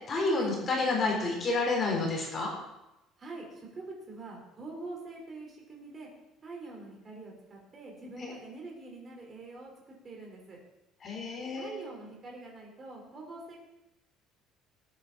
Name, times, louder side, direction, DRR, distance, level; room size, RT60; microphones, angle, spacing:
voice 1, 0.1-2.5 8.2-8.3 11.0-11.9, left 3 dB, 30° left, -1 dB, 4.0 m, -29 dB
voice 2, 3.2-6.1 6.4-10.6 11.5-13.6, right 2 dB, 25° right, -1 dB, 4.6 m, -45 dB
19.0 x 9.7 x 4.3 m, 0.93 s
cardioid pair, 150°, 0 cm